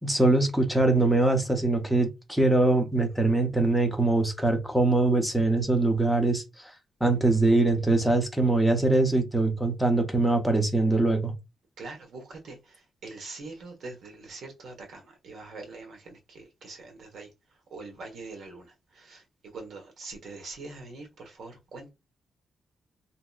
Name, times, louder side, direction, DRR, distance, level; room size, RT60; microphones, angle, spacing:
voice 1, 0.0-6.4 7.0-11.3, right 2 dB, ahead, 0.7 m, -23 dB
voice 2, 11.8-12.6 13.0-17.3 17.7-18.7 19.0-19.2 19.5-21.9, right 3 dB, 75° right, 1.1 m, -43 dB
2.8 x 2.6 x 2.3 m
cardioid pair, 125°, 0 cm